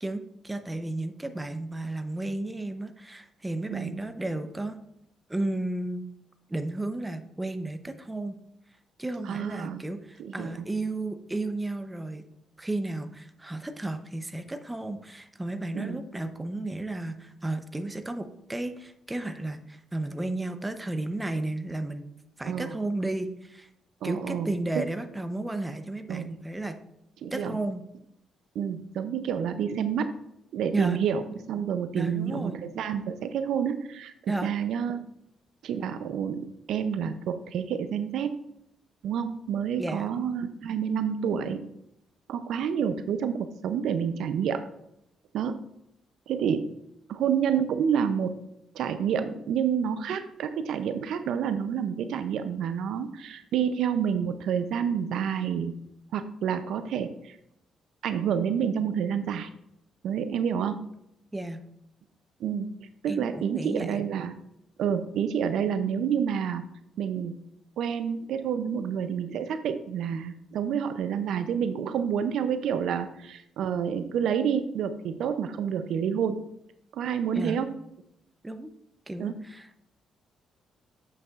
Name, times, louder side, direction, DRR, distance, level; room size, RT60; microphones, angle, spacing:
voice 1, 0.0-4.8 5.3-6.1 6.5-8.4 9.0-12.3 12.6-22.1 22.4-23.7 24.0-26.8 27.3-27.8 30.7-31.0 32.0-32.6 34.3-34.5 39.8-40.1 61.3-61.6 63.1-64.0 77.3-77.6 78.4-78.7 79.1-79.8, right 2 dB, 15° right, 8 dB, 0.7 m, -33 dB
voice 2, 9.3-9.8 10.2-10.5 15.7-16.0 22.5-22.8 24.0-24.8 26.1-26.3 27.2-27.6 28.6-30.1 30.5-35.0 35.6-38.4 39.0-41.7 42.3-44.6 45.3-45.6 46.3-46.7 47.1-48.3 48.7-55.7 56.1-57.4 58.0-59.5 60.0-60.8 62.4-62.7 63.0-64.3 64.8-66.6 67.0-67.4 67.8-76.4 76.9-77.7 79.2-79.4, right 7 dB, 75° right, 10 dB, 0.5 m, -29 dB
7.7 x 6.7 x 2.4 m, 0.79 s
cardioid pair, 90°, 0 cm